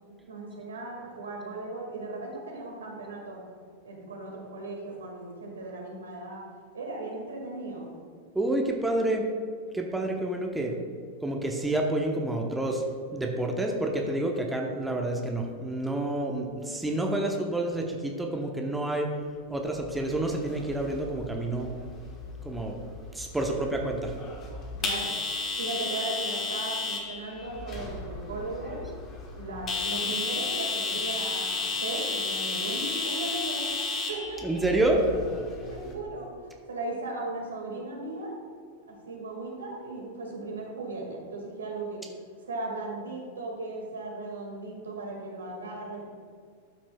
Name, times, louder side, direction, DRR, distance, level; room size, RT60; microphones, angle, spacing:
voice 1, 0.3-3.4 3.8-6.4 6.7-7.9 24.8-28.9 29.3-33.8 34.1-34.4 35.5-38.3 38.9-42.0 42.5-46.0, right 2 dB, 75° right, 0 dB, 1.8 m, -37 dB
voice 2, 8.3-9.2 9.7-10.8 11.2-12.8 13.1-19.1 19.5-21.7 22.4-22.8 23.1-24.1 34.4-35.1, right 1 dB, 5° right, 1 dB, 0.8 m, -28 dB
sound 1, 19.8-35.9, left 3 dB, 30° left, 1.2 m, -33 dB
12.5 x 6.0 x 2.3 m, 2.1 s
figure-of-eight pair, 95°, 0 cm